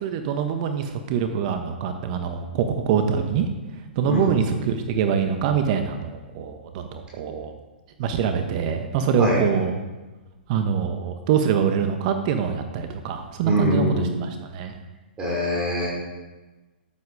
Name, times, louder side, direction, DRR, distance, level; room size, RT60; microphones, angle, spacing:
voice 1, 0.0-3.4 3.7-7.5 8.0-9.8 10.5-14.7, right 7 dB, 45° right, 6 dB, 1.3 m, -24 dB
voice 2, 4.1-4.6 9.2-9.4 13.4-14.1 15.2-15.9, equal, 15° right, -4 dB, 5.1 m, -23 dB
14.0 x 10.5 x 5.0 m, 1.2 s
hypercardioid pair, 120°, 6 cm